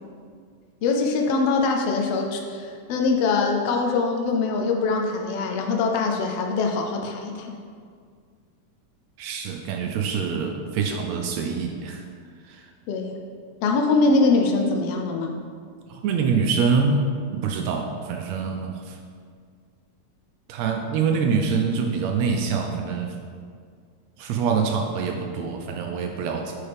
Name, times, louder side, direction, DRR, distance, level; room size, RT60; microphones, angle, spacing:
voice 1, 0.8-7.5 12.9-13.1 13.6-15.3, left 3 dB, 85° left, 2 dB, 1.3 m, -23 dB
voice 2, 9.2-12.0 12.5-12.6 15.9-17.0 17.3-19.0 20.5-23.1 24.2-26.5, right 5 dB, 80° right, 3 dB, 1.6 m, -25 dB
8.5 x 5.7 x 3.4 m, 2.1 s
omnidirectional pair, 3.5 m